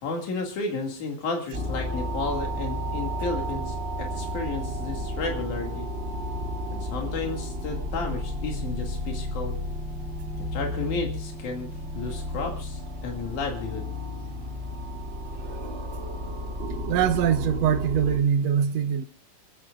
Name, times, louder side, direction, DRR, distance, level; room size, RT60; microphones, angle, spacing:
voice 1, 0.0-5.9 6.7-9.6 10.4-13.9, left 3 dB, 85° left, 3.7 m, -32 dB
sound 1, 1.5-18.2, equal, 30° right, 1.2 m, -32 dB
voice 2, 16.9-19.1, right 8 dB, 70° right, 1.9 m, -23 dB
29.0 x 14.0 x 2.4 m
omnidirectional pair, 3.4 m